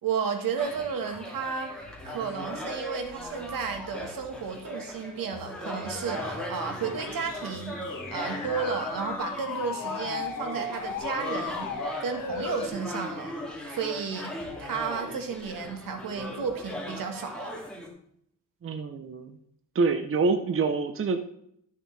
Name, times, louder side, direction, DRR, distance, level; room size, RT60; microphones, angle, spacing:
voice 1, 0.0-7.8 8.1-13.3 13.7-17.5, right 6 dB, 80° right, 6 dB, 1.5 m, -33 dB
sound 1, 0.6-17.9, left 1 dB, 5° left, 2.3 m, -38 dB
sound 2, 6.1-12.7, left 5 dB, 70° left, 2.1 m, -37 dB
voice 2, 18.6-19.4 19.7-21.2, right 4 dB, 40° right, 7 dB, 0.8 m, -26 dB
13.0 x 6.5 x 3.3 m, 0.69 s
cardioid pair, 100°, 33 cm